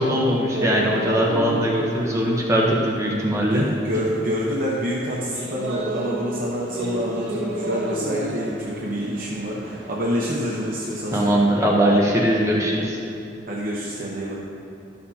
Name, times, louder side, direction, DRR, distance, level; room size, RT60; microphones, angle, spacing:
voice 1, 0.0-3.6 11.1-13.0, equal, 15° right, -3 dB, 0.8 m, -20 dB
sound 1, 0.5-12.6, right 1 dB, 75° right, 1.1 m, -33 dB
voice 2, 3.4-11.4 13.5-14.4, equal, 50° right, -5 dB, 0.9 m, -27 dB
12.5 x 6.7 x 2.8 m, 2.7 s
head